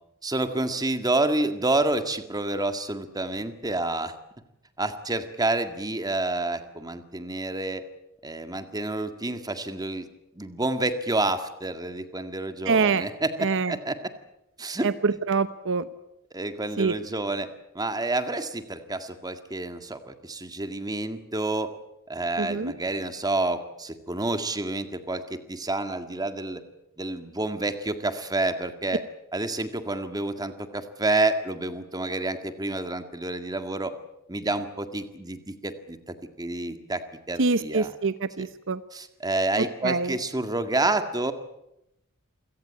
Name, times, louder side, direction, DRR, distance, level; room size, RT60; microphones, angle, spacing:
voice 1, 0.2-4.1 4.8-7.8 8.2-10.1 10.3-14.0 14.6-14.9 16.3-17.5 17.7-21.7 22.1-26.6 27.0-29.0 29.3-33.9 34.3-37.9 38.9-41.3, right 2 dB, 20° right, 9 dB, 1.9 m, -29 dB
voice 2, 12.7-13.1 13.4-13.8 14.8-15.9 16.8-17.0 22.4-22.7 37.4-38.8 39.8-40.2, right 4 dB, 60° right, 13 dB, 0.9 m, -25 dB
28.0 x 17.0 x 8.9 m, 0.85 s
head